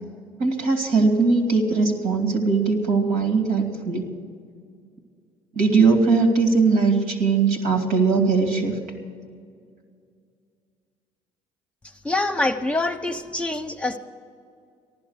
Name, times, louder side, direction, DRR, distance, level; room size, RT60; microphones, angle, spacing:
voice 1, 0.4-4.1 5.5-8.8, right 4 dB, 80° right, 5 dB, 2.5 m, -20 dB
voice 2, 12.0-14.0, left 2 dB, 10° left, 6 dB, 1.0 m, -25 dB
14.5 x 12.0 x 6.5 m, 2.2 s
supercardioid pair, 75°, 13 cm